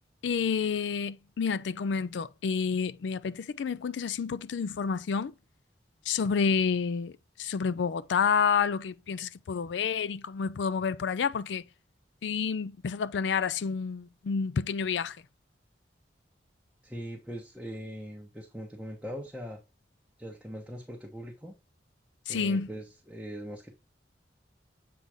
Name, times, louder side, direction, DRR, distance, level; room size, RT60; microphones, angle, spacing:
voice 1, 0.2-5.3 6.1-7.1 7.4-11.6 12.2-15.2 22.3-22.7, left 6 dB, 75° left, 0.4 m, -29 dB
voice 2, 16.8-19.6 20.2-21.5 22.3-23.7, equal, 5° right, 0.9 m, -41 dB
7.6 x 3.9 x 3.4 m
head